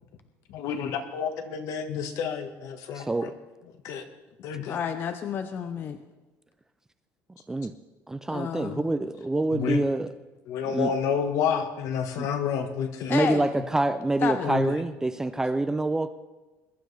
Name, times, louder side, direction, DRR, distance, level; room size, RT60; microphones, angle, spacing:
voice 1, 0.5-3.3 3.8-4.0 4.4-4.8 9.5-9.8 10.5-13.2 14.4-14.8, left 7 dB, 60° left, 7 dB, 1.4 m, -29 dB
voice 2, 3.0-3.3 7.5-7.8 8.1-10.1 10.7-10.9 12.2-12.3 13.1-16.1, right 2 dB, 10° right, 11 dB, 0.4 m, -26 dB
voice 3, 4.7-6.0 8.3-8.9 13.1-13.5 14.2-14.5, left 7 dB, 35° left, 8 dB, 0.7 m, -30 dB
22.0 x 11.5 x 3.4 m, 1.2 s
cardioid pair, 155°, 6 cm